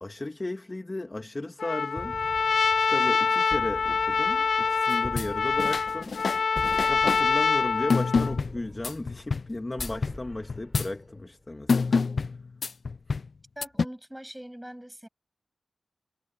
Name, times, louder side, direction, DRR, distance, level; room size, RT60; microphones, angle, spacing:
voice 1, 0.0-2.2 2.8-6.2 6.9-12.1, left 2 dB, 30° left, 2.3 m, -35 dB
Trumpet, 1.6-8.4, left 5 dB, 85° left, 1.4 m, -25 dB
sound 1, 1.9-11.4, left 1 dB, 10° left, 7.8 m, -44 dB
sound 2, 4.9-5.3 5.6-7.2 7.9-9.5 9.8-10.2 10.5-10.9 11.7-13.3 13.6-13.9, left 4 dB, 70° left, 0.5 m, -27 dB
voice 2, 13.6-15.1, equal, 5° right, 7.3 m, -42 dB
wide cardioid pair, 80°, 0 cm